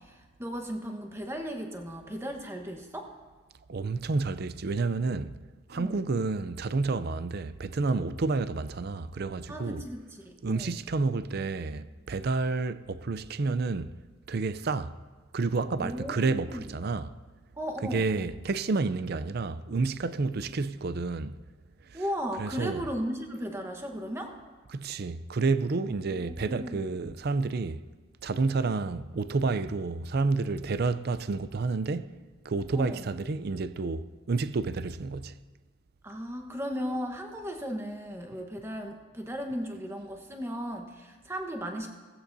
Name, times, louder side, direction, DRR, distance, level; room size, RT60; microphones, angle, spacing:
voice 1, 0.0-3.1 5.8-6.0 9.5-10.7 15.8-16.6 17.6-18.1 21.9-24.4 25.9-26.9 32.7-33.1 36.0-41.9, equal, 15° right, 1.2 m, -36 dB
voice 2, 3.7-5.4 5.7-9.8 10.4-13.9 14.3-15.0 15.3-17.1 17.8-21.4 21.9-22.0 22.4-22.8 24.7-27.8 28.2-32.1 32.4-35.4, right 3 dB, 50° right, 0.5 m, -30 dB
17.0 x 15.0 x 2.7 m
head